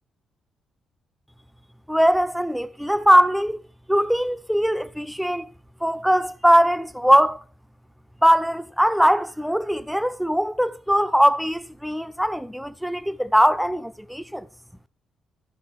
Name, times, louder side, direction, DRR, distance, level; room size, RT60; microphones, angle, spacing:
voice 1, 1.9-3.6 3.9-5.5 5.8-7.4 8.2-14.5, equal, ahead, 0.6 m, -20 dB
13.5 x 5.6 x 5.8 m
cardioid pair, 120°, 0 cm